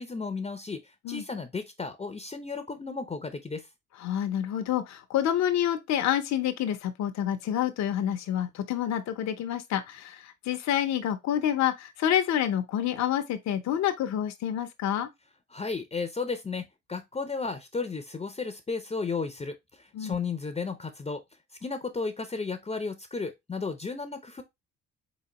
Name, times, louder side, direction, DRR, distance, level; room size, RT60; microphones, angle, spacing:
voice 1, 0.0-3.7 15.5-21.2 21.6-24.4, left 4 dB, 20° left, 0.6 m, -34 dB
voice 2, 4.0-15.1 19.9-20.2, left 10 dB, 65° left, 0.7 m, -28 dB
4.1 x 3.9 x 2.9 m
supercardioid pair, 65°, 30 cm